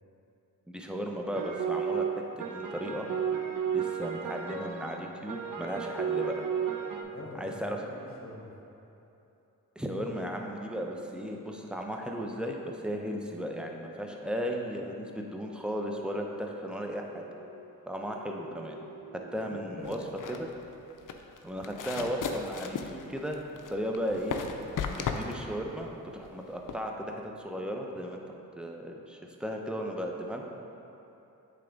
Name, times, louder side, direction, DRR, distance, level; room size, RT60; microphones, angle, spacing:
voice 1, 0.7-2.1 2.4-3.1 3.7-6.3 7.3-7.8 9.8-17.2 17.9-18.8 19.3-20.0 20.3-20.5 21.4-24.4 25.0-28.2 28.6-30.5, equal, 5° right, 1 dB, 0.7 m, -35 dB
sound 1, 1.3-7.0, right 7 dB, 65° right, 0.6 m, -33 dB
voice 2, 7.0-8.5 19.4-20.1, left 2 dB, 40° left, -3 dB, 1.2 m, -44 dB
sound 2, 16.9-20.7, right 2 dB, 90° right, 1.5 m, -51 dB
sound 3, 19.8-26.9, left 5 dB, 65° left, 0.5 m, -37 dB
8.3 x 3.5 x 3.9 m, 2.9 s
cardioid pair, 55°, 35 cm